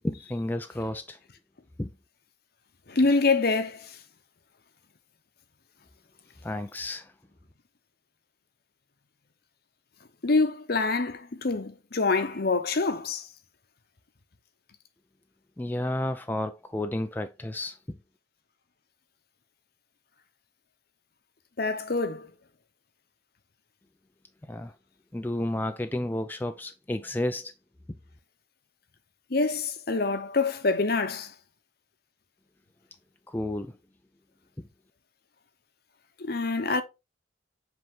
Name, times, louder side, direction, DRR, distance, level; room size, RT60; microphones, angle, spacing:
voice 1, 0.0-1.2 1.8-1.9 6.4-7.1 15.6-18.0 24.5-24.7 25.1-27.5 33.3-33.7, left 1 dB, 10° left, 0.4 m, -31 dB
voice 2, 2.9-3.9 10.2-13.2 21.6-22.3 29.3-31.3 36.2-36.8, left 3 dB, 55° left, 0.9 m, -26 dB
7.6 x 3.5 x 3.7 m
head